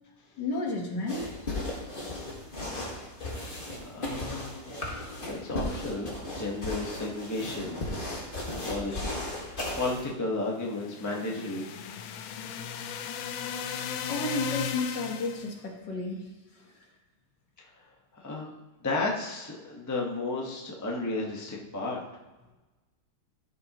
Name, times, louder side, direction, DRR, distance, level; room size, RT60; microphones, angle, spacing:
voice 1, 0.4-1.3 1.9-2.0 14.1-16.3 16.6-16.7, left 2 dB, 60° left, 1 dB, 1.9 m, -32 dB
sound 1, 1.1-10.1, left 1 dB, 30° left, 1.7 m, -36 dB
voice 2, 3.2-3.6 3.9-4.7 5.2-7.8 8.5-11.6 17.6-17.7 18.2-18.5 18.8-22.0, left 2 dB, 10° left, -2 dB, 1.0 m, -33 dB
sound 2, 10.6-15.5, left 8 dB, 80° left, 1.4 m, -36 dB
14.5 x 6.8 x 3.0 m, 1.2 s
omnidirectional pair, 2.1 m